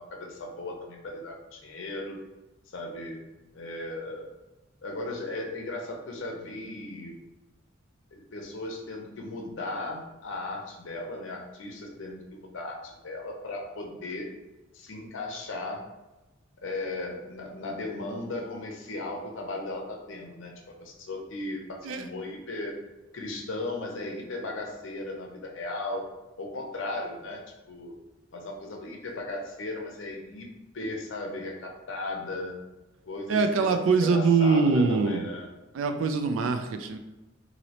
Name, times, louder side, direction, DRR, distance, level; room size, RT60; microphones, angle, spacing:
voice 1, 0.0-2.2 2.7-3.2 3.5-4.3 4.8-7.2 8.1-14.3 14.7-15.8 16.6-22.8 23.1-26.1 26.4-27.4 27.7-27.9 28.3-30.5 30.7-32.6 33.1-33.4 33.7-35.5, left 2 dB, 70° left, 1 dB, 0.6 m, -36 dB
voice 2, 33.3-35.3 35.7-37.0, right 4 dB, 70° right, 7 dB, 0.3 m, -23 dB
3.0 x 2.7 x 2.8 m, 1.0 s
head